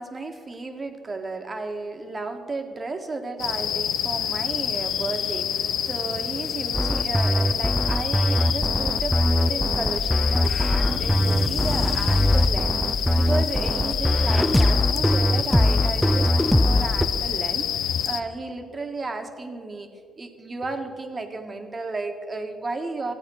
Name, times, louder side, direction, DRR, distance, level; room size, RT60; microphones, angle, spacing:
voice 1, 0.0-19.9 20.2-23.1, right 3 dB, 30° right, 6 dB, 1.5 m, -33 dB
sound 1, 3.4-18.2, left 9 dB, 80° left, 0.6 m, -28 dB
sound 2, 6.7-17.1, equal, ahead, 0.6 m, -21 dB
sound 3, 10.4-12.6, left 3 dB, 45° left, 2.0 m, -26 dB
15.0 x 8.7 x 6.3 m, 2.2 s
cardioid pair, 90°, 0 cm